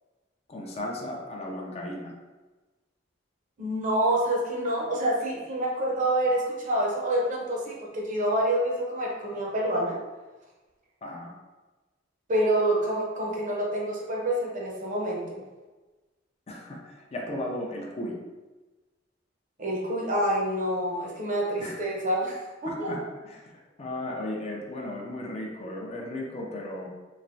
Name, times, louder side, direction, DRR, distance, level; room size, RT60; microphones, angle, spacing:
voice 1, 0.5-2.1 11.0-11.3 16.5-18.2 21.6-21.9 22.7-23.0 23.3-26.9, left 1 dB, 35° left, -1 dB, 0.4 m, -35 dB
voice 2, 3.6-10.0 12.3-15.4 19.6-22.9, right 1 dB, 45° right, -2 dB, 0.7 m, -27 dB
3.1 x 2.5 x 2.6 m, 1.2 s
head